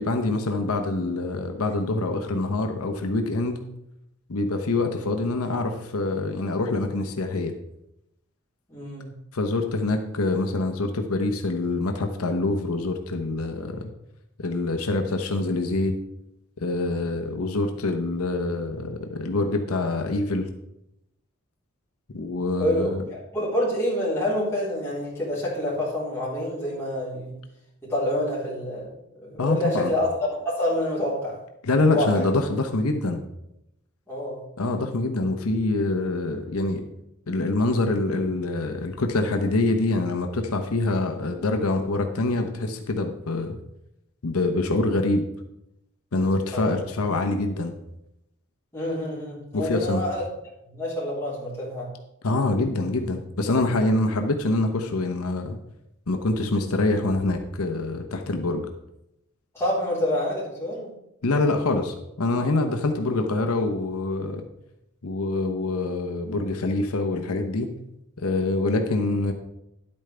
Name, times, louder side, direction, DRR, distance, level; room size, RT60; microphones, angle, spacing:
voice 1, 0.0-3.6 4.3-7.5 9.3-13.9 14.4-15.9 16.6-20.5 22.1-23.0 29.4-29.9 31.6-33.2 34.6-36.8 37.3-43.6 44.2-45.2 46.1-47.7 49.5-50.0 52.2-55.6 56.1-58.7 61.2-64.5 65.0-67.7 68.2-69.3, left 2 dB, 90° left, 5 dB, 0.9 m, -25 dB
voice 2, 8.7-9.1 22.6-27.3 27.8-28.9 29.2-30.1 30.4-31.4 31.9-32.3 34.1-34.4 46.5-46.8 48.7-50.3 50.6-51.9 59.5-60.9, left 1 dB, 10° left, -8 dB, 3.8 m, -27 dB
10.5 x 8.7 x 3.4 m, 0.83 s
head